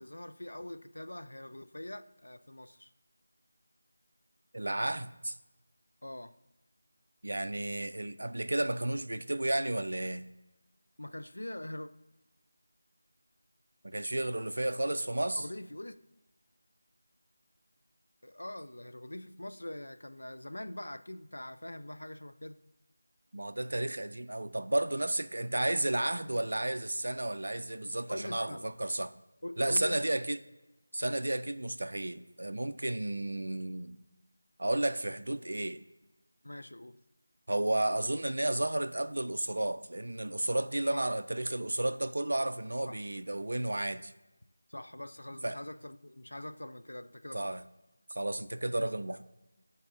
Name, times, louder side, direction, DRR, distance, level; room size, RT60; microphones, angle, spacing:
voice 1, 0.0-2.9 6.0-6.3 11.0-11.9 15.4-16.0 18.2-22.6 28.1-28.7 29.4-30.1 36.4-37.0 40.9-41.1 42.8-43.0 44.7-47.6 48.8-49.2, left 1 dB, 65° left, 0.3 m, -43 dB
voice 2, 4.5-5.4 7.2-10.3 13.8-15.5 23.3-29.1 29.6-30.4 30.9-34.0 34.6-35.8 37.5-44.1 45.4-45.6 47.3-47.6 48.1-49.2, right 1 dB, 60° right, 0.3 m, -32 dB
10.0 x 4.1 x 2.5 m
figure-of-eight pair, 165°, 0 cm